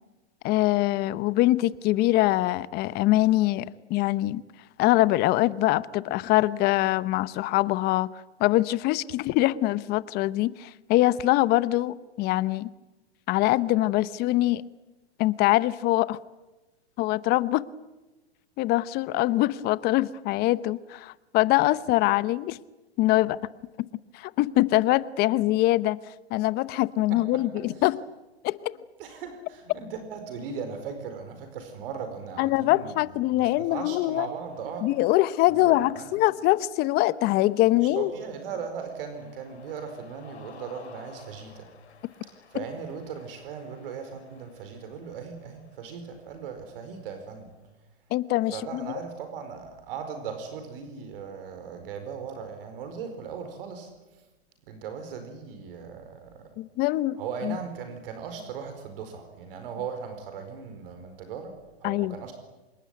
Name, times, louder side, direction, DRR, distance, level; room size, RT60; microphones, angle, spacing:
voice 1, 0.4-4.4 4.8-8.1 8.4-12.7 13.3-14.6 15.2-16.2 17.0-17.7 18.6-22.6 23.0-23.4 24.1-26.0 26.3-28.0 28.4-28.7 32.4-34.3 34.8-38.1 48.1-48.5 56.6-57.2 57.4-57.6 61.8-62.2, left 17 dB, 30° left, 0.9 m, -23 dB
voice 2, 27.1-27.4 27.7-27.9 29.0-34.9 35.5-36.2 37.8-41.7 42.5-47.5 48.5-54.3 54.6-56.5 57.2-62.3, right 6 dB, 60° right, 4.8 m, -38 dB
Cheering, 34.3-47.7, left 6 dB, 85° left, 5.5 m, -55 dB
26.0 x 21.0 x 9.4 m
hypercardioid pair, 135°, 32 cm